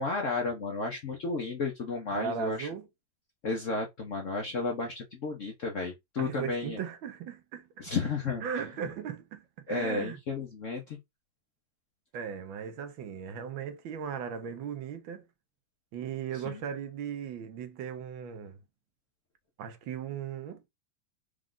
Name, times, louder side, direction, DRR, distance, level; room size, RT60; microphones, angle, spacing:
voice 1, 0.0-2.7 3.4-6.8 7.8-8.4 9.7-11.0 16.5-16.6, left 4 dB, 60° left, 0.8 m, -33 dB
voice 2, 2.1-2.9 6.2-7.9 8.4-10.2 12.1-15.2 15.9-18.6 19.6-20.7, right 7 dB, 70° right, 1.5 m, -37 dB
4.8 x 2.4 x 3.8 m
omnidirectional pair, 2.3 m